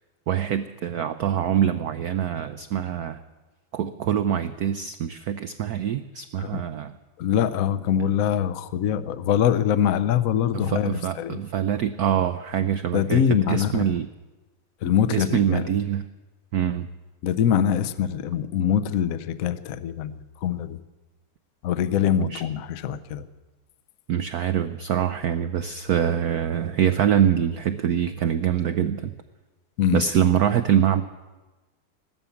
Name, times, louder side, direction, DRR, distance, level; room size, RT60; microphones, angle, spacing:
voice 1, 0.3-3.2 3.7-7.0 10.5-14.1 15.1-16.0 16.5-16.9 22.1-22.4 24.1-29.1 29.9-31.0, right 9 dB, 80° right, 10 dB, 0.8 m, -24 dB
voice 2, 7.2-11.4 12.9-14.0 14.8-15.7 17.2-20.1 20.4-20.8 21.6-23.3 29.8-30.0, left 9 dB, 65° left, 12 dB, 0.8 m, -23 dB
16.0 x 12.5 x 7.1 m, 1.2 s
omnidirectional pair, 2.3 m